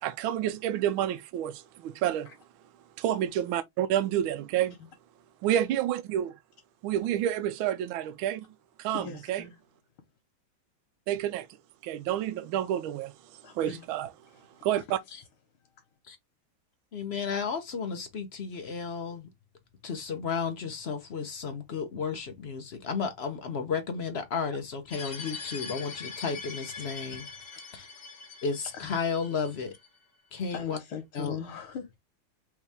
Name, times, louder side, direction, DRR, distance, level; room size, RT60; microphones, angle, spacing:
voice 1, 0.0-2.3 3.0-4.7 5.4-6.4 6.8-8.4 8.8-9.4 11.1-11.5 11.8-13.1 13.6-14.1 14.6-15.0, right 11 dB, 80° right, 1.4 m, -29 dB
voice 2, 8.9-9.5 13.4-13.8 15.1-15.2 27.5-27.6 28.7-29.1 30.5-32.0, left 7 dB, 90° left, 2.0 m, -40 dB
voice 3, 16.9-19.3 19.8-27.3 27.7-27.9 28.4-29.8 30.3-30.8 31.1-31.4, left 5 dB, 70° left, 0.6 m, -33 dB
sound 1, 24.9-29.9, left 5 dB, 40° left, 0.9 m, -42 dB
4.8 x 3.2 x 3.3 m
omnidirectional pair, 2.3 m